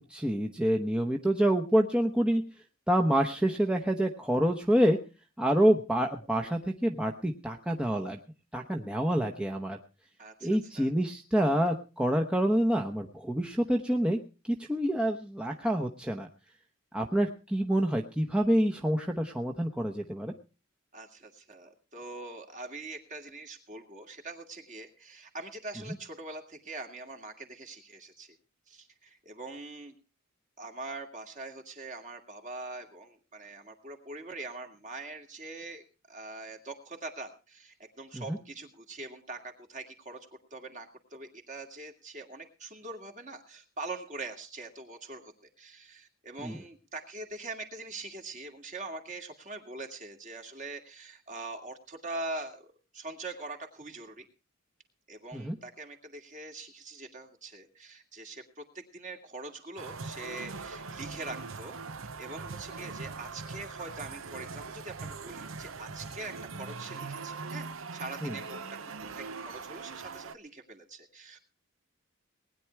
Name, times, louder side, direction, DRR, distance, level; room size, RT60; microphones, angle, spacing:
voice 1, 0.0-2.4 2.9-5.0 5.4-8.2 8.5-9.8 10.4-14.2 14.5-16.3 16.9-20.3 38.1-38.4 46.4-46.5 55.3-55.6 68.2-68.3, equal, 5° right, 1 dB, 0.9 m, -27 dB
voice 2, 10.2-10.5 10.7-10.9 20.9-28.4 28.7-30.0 30.6-45.3 45.6-52.7 52.9-54.3 55.1-58.6 58.9-68.7 69.1-71.4, right 2 dB, 35° right, 4 dB, 2.4 m, -43 dB
sound 1, 59.8-70.3, right 4 dB, 70° right, 0.8 m, -41 dB
19.5 x 10.0 x 4.6 m, 0.33 s
head